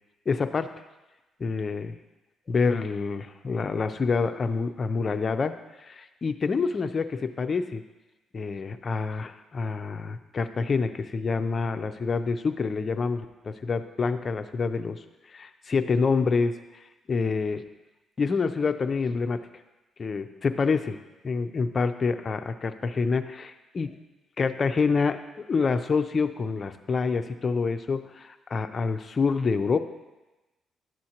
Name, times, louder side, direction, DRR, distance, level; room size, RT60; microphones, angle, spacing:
voice 1, 0.3-0.7 1.4-2.0 2.5-7.8 8.3-15.0 15.3-16.6 17.1-17.6 18.2-19.4 20.0-21.0 21.2-23.9 24.4-29.8, left 4 dB, 40° left, 8 dB, 0.5 m, -27 dB
11.5 x 7.6 x 2.9 m, 1.1 s
cardioid pair, 90°, 0 cm